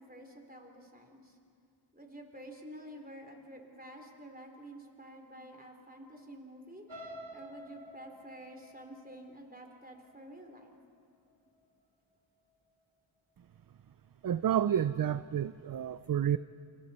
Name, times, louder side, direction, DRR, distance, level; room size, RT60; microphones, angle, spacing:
voice 1, 0.0-1.4 1.9-6.8 7.3-10.7, right 1 dB, 20° right, 3 dB, 3.5 m, -50 dB
sound 1, 6.9-10.8 11.3-11.6 12.0-12.1, equal, 85° right, 5.8 m, -50 dB
voice 2, 14.2-16.4, right 9 dB, 50° right, 14 dB, 0.5 m, -30 dB
28.5 x 24.0 x 4.3 m, 2.4 s
cardioid pair, 45°, 47 cm